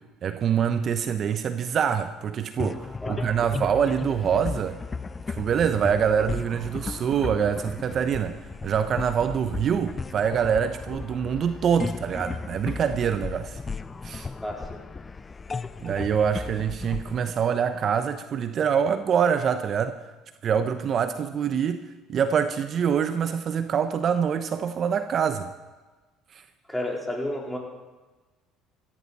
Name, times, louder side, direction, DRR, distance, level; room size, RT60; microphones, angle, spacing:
voice 1, 0.2-4.8 5.3-8.3 8.6-13.6 14.0-14.3 15.8-20.0 20.4-25.5 26.3-26.4, right 7 dB, 50° right, 10 dB, 0.8 m, -25 dB
sound 1, 2.6-18.2, left 4 dB, 25° left, 0.6 m, -35 dB
voice 2, 14.4-14.8 26.7-27.6, left 1 dB, 10° left, -1 dB, 4.2 m, -31 dB
15.5 x 15.0 x 4.2 m, 1.2 s
hypercardioid pair, 70°, 0 cm